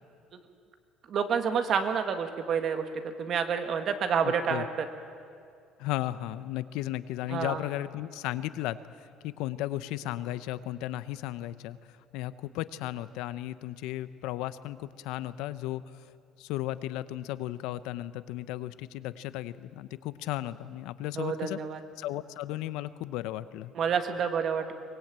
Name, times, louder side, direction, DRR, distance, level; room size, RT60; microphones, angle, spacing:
voice 1, 1.1-4.6 7.3-7.6 21.1-21.8 23.8-24.7, right 6 dB, 40° right, 7 dB, 1.7 m, -28 dB
voice 2, 4.2-4.7 5.8-15.8 16.4-21.6 22.0-23.7, left 14 dB, 80° left, 15 dB, 0.8 m, -35 dB
23.5 x 20.5 x 9.0 m, 2.3 s
cardioid pair, 170°, 0 cm